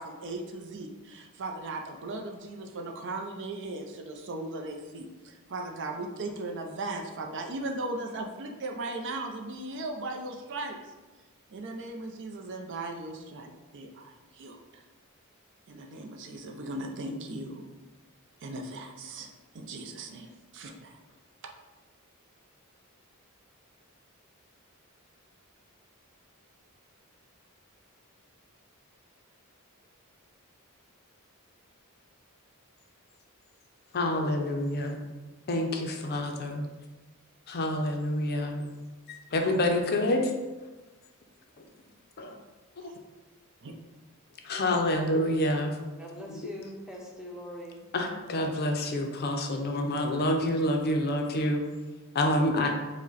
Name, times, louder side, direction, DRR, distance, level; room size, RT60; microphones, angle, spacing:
voice 1, 0.0-10.8 11.5-14.8 15.7-17.6 18.4-19.3 19.5-21.0 43.6-43.7, right 2 dB, 55° right, 3 dB, 0.5 m, -38 dB
voice 2, 33.9-35.0 35.5-36.7 37.5-38.7 39.1-40.3 41.6-41.7 42.2-42.4 42.8-42.9 44.4-45.8 46.3-46.4 47.9-51.6 52.1-52.7, left 1 dB, 45° left, 3 dB, 0.5 m, -28 dB
voice 3, 46.0-47.8 49.5-49.6 52.4-52.7, equal, 5° right, -1 dB, 0.6 m, -42 dB
4.9 x 2.1 x 3.9 m, 1.2 s
head